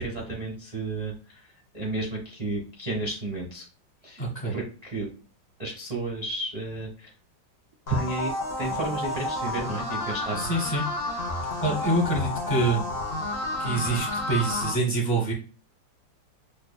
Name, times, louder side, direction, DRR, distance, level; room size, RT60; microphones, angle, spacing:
voice 1, 0.0-3.6 4.0-4.2 4.5-5.1 5.6-7.1 7.9-10.4, right 2 dB, 35° right, -3 dB, 0.6 m, -32 dB
voice 2, 4.2-4.5 10.3-10.9 11.6-12.8 13.6-15.3, right 2 dB, 35° left, -4 dB, 1.1 m, -26 dB
sound 1, 7.9-14.7, left 1 dB, 65° left, 0.5 m, -30 dB
5.5 x 2.3 x 2.2 m, 0.36 s
omnidirectional pair, 2.1 m